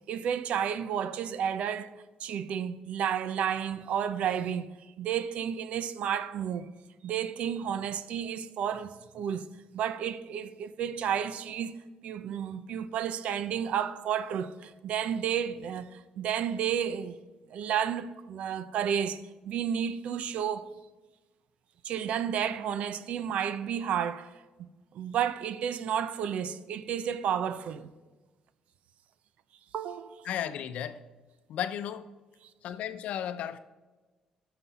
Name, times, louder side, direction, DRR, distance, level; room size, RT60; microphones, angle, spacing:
voice 1, 0.1-4.7 5.0-6.7 7.0-9.5 9.7-11.8 12.0-17.2 17.5-20.7 21.8-24.3 24.6-24.7 24.9-27.9 29.7-30.3, right 8 dB, 70° right, 0.6 m, -31 dB
voice 2, 30.2-31.0 31.5-32.1 32.6-33.6, left 10 dB, 75° left, 0.6 m, -34 dB
14.5 x 5.9 x 4.1 m
cardioid pair, 85°, 2 cm